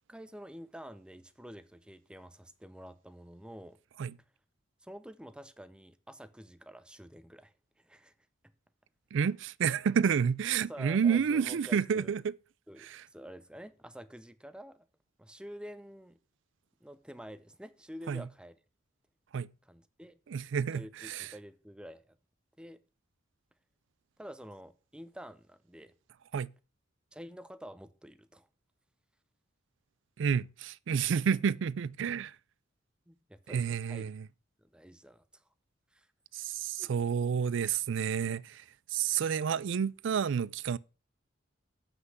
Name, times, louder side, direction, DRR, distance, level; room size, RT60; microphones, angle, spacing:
voice 1, 0.1-3.8 4.8-8.1 10.6-12.2 12.7-14.9 15.2-16.2 16.8-18.6 19.6-20.2 20.7-22.2 22.6-22.8 24.2-25.9 27.1-28.5 33.1-34.1 34.6-35.2 35.9-36.1 36.8-36.9, equal, 5° right, 0.6 m, -48 dB
voice 2, 9.1-12.3 12.8-13.0 18.1-18.2 19.3-19.5 20.3-21.3 26.3-26.5 30.2-32.3 33.5-34.3 36.3-38.6 38.9-40.8, right 7 dB, 65° right, 0.4 m, -30 dB
8.1 x 5.9 x 6.4 m
head